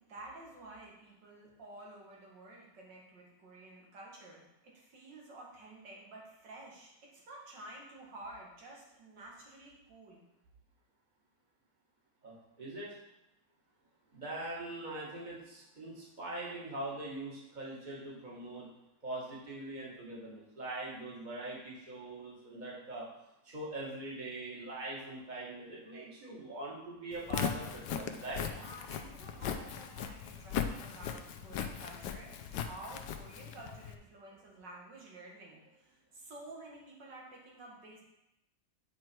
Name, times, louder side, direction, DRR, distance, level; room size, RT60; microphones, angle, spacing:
voice 1, 0.1-10.2 28.5-38.0, right 2 dB, 85° right, -3 dB, 2.3 m, -51 dB
voice 2, 12.2-13.0 14.1-18.7 19.0-23.1 23.4-28.5, right 2 dB, 25° right, -5 dB, 2.0 m, -42 dB
Walk footsteps, 27.1-33.9, left 8 dB, 80° left, 1.3 m, -38 dB
9.3 x 4.6 x 4.6 m, 0.87 s
omnidirectional pair, 1.8 m